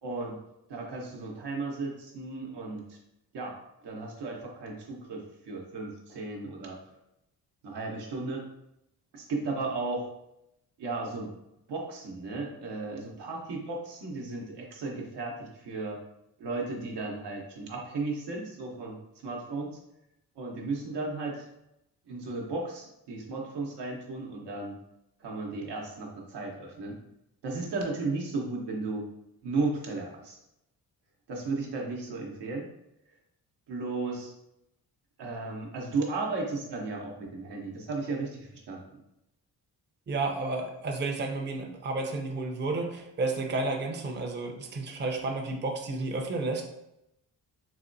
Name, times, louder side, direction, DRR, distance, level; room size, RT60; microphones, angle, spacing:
voice 1, 0.0-0.4 0.7-3.0 3.3-3.5 3.8-6.8 7.6-8.4 9.1-10.1 10.8-11.3 11.7-16.0 16.4-19.8 20.4-21.5 22.1-24.7 25.2-27.0 27.4-29.0 29.4-30.4 31.3-32.7 33.7-34.3 35.2-39.0, right 3 dB, 85° right, -1 dB, 0.8 m, -35 dB
voice 2, 40.1-46.6, right 3 dB, 25° right, 3 dB, 0.5 m, -31 dB
4.1 x 2.1 x 2.5 m, 0.84 s
cardioid pair, 65°, 40 cm